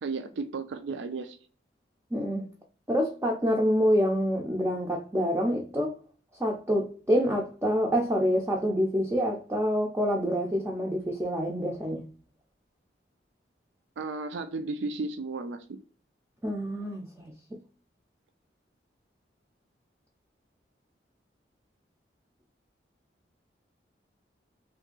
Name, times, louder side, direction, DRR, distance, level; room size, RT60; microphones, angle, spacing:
voice 1, 0.0-1.4 14.0-15.8, right 3 dB, 85° right, 0.4 m, -34 dB
voice 2, 2.1-2.5 2.9-5.9 6.3-12.1 16.4-17.6, equal, 15° right, 0.4 m, -27 dB
2.7 x 2.5 x 3.7 m
head